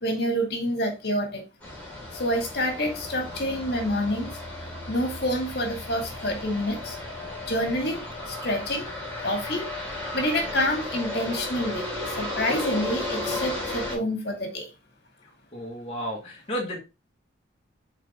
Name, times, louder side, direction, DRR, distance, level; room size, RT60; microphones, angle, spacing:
voice 1, 0.0-1.4 2.1-4.3 4.9-7.0 7.5-8.9 9.2-9.7 10.1-11.9 12.2-14.7, equal, 55° left, 2.0 m, -27 dB
sound 1, 1.6-14.0, left 2 dB, 5° left, 3.3 m, -34 dB
voice 2, 15.5-16.8, equal, 30° left, 1.4 m, -32 dB
7.4 x 4.0 x 3.5 m
head